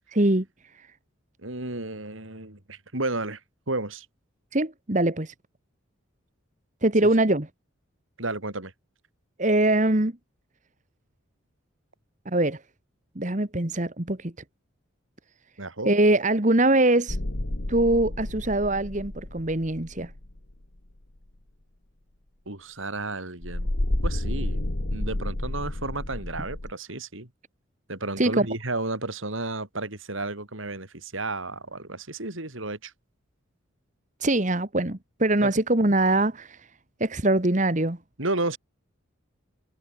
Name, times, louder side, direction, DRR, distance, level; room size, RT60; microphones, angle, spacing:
voice 1, 0.1-0.4 4.5-5.3 6.8-7.5 9.4-10.1 12.2-12.6 13.1-14.3 15.8-17.2 17.7-20.1 28.2-28.5 34.2-36.6 37.0-38.0, right 2 dB, 35° right, 1.6 m, -23 dB
voice 2, 1.4-3.4 3.7-4.1 7.0-7.1 8.2-8.7 15.6-15.9 22.5-23.7 24.0-24.6 24.9-27.3 27.9-32.9 35.4-35.5 38.2-38.6, right 2 dB, 75° right, 4.5 m, -32 dB
sound 1, 17.1-20.6 23.4-26.7, left 1 dB, 60° left, 1.8 m, -30 dB
head